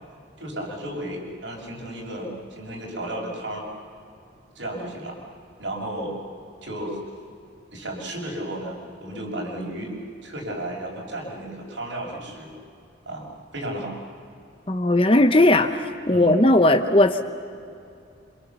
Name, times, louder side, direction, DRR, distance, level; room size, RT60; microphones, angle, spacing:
voice 1, 0.4-3.6 4.5-5.2 5.6-6.2 6.6-7.0 7.7-10.0 10.2-12.5 13.1-13.3 13.5-14.0 16.1-16.4, right 1 dB, 70° right, -1 dB, 6.1 m, -33 dB
voice 2, 14.7-17.2, left 1 dB, 25° left, 8 dB, 0.9 m, -18 dB
28.0 x 26.5 x 7.1 m, 2.5 s
head